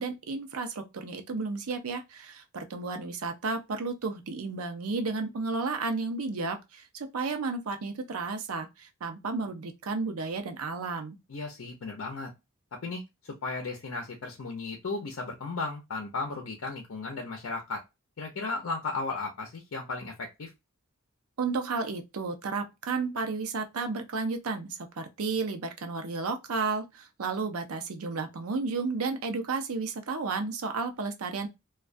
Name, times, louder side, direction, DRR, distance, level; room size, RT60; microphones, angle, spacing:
voice 1, 0.0-11.2 21.4-31.5, right 4 dB, 90° right, 0.6 m, -32 dB
voice 2, 11.3-12.3 12.8-17.8 18.2-20.5, left 3 dB, 70° left, 0.5 m, -35 dB
2.3 x 2.2 x 2.4 m
head